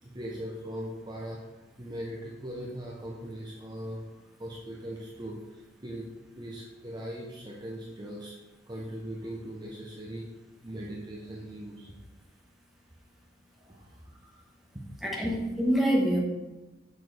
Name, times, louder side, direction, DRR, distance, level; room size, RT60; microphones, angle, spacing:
voice 1, 0.0-4.1 4.4-6.1 6.4-8.4 8.7-10.3 10.6-12.0 13.6-14.4 14.7-14.8, right 1 dB, 20° right, -3 dB, 0.8 m, -40 dB
voice 2, 15.0-16.2, equal, ahead, -2 dB, 1.1 m, -25 dB
6.6 x 6.3 x 3.3 m, 1.0 s
head